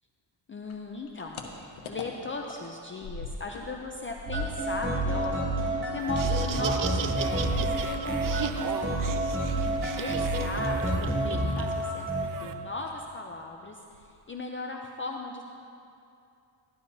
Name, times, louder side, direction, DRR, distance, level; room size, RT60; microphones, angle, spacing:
voice 1, 0.5-15.4, left 3 dB, 25° left, 1 dB, 0.6 m, -38 dB
sound 1, 0.6-3.7 4.0-8.5 8.8-11.6 11.8-12.5 12.8-13.1 13.4-13.5 13.8-14.3, left 3 dB, 90° left, 1.1 m, -44 dB
sound 2, 4.2-12.2, right 1 dB, 25° right, 2.7 m, -28 dB
Laughter, 6.0-12.5, right 8 dB, 45° right, 0.5 m, -37 dB
14.0 x 11.5 x 2.8 m, 2.6 s
cardioid pair, 110°, 47 cm